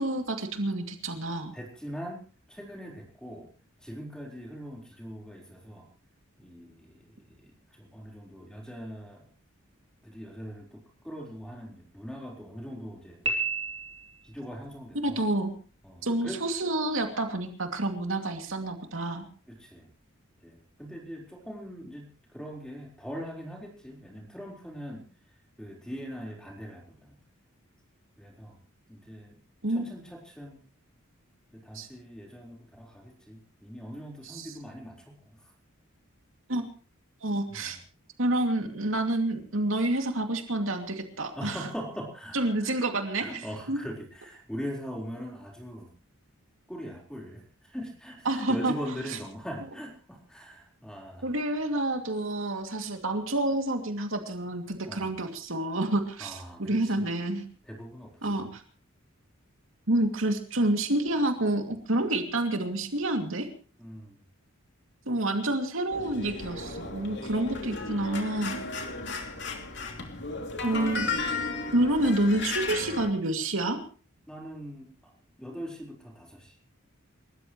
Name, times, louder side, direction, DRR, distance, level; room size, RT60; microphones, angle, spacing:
voice 1, 0.0-1.5 15.0-15.5 16.0-19.3 29.6-29.8 31.7-31.9 34.2-34.5 36.5-36.6 37.2-37.8 38.2-41.7 42.3-43.4 43.7-43.8 48.3-48.7 49.1-49.2 51.2-57.5 58.2-58.6 59.9-63.5 65.1-68.6 70.6-71.4 71.7-73.8, right 1 dB, 70° right, 4 dB, 2.5 m, -28 dB
voice 2, 1.5-2.2 2.5-3.5 3.8-5.9 6.4-9.2 10.0-13.2 14.2-15.2 15.8-16.4 19.6-19.9 20.4-25.1 25.6-27.2 28.2-28.5 28.9-29.4 29.7-30.6 31.5-35.2 37.5-37.7 41.4-42.7 43.2-45.9 46.7-51.3 54.8-55.1 56.2-57.1 57.7-58.4 63.8-64.1 69.2-69.5 69.9-70.0 74.3-75.1 75.4-76.5, equal, 5° left, 0 dB, 4.3 m, -41 dB
Piano, 13.3-14.4, right 3 dB, 25° right, 2.8 m, -31 dB
sound 1, 65.9-73.1, left 3 dB, 55° left, 2.9 m, -34 dB
29.0 x 14.0 x 3.1 m, 0.37 s
head